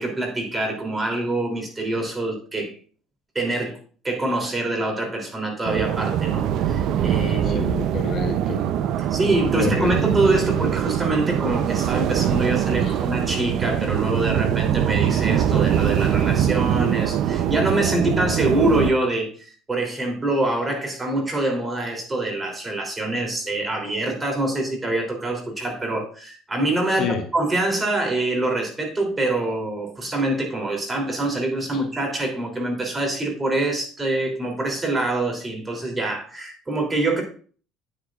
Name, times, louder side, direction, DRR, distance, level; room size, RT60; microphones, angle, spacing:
voice 1, 0.0-2.7 3.3-3.8 4.0-7.7 9.1-37.2, right 2 dB, 20° right, 2 dB, 3.1 m, -25 dB
sound 1, 5.7-18.9, right 10 dB, 60° right, 0.6 m, -23 dB
voice 2, 7.4-8.7 9.5-9.9 12.8-13.0 26.9-27.2 31.7-31.8, left 6 dB, 50° left, 5 dB, 1.0 m, -28 dB
9.1 x 8.2 x 2.5 m, 0.42 s
supercardioid pair, 100°, 0 cm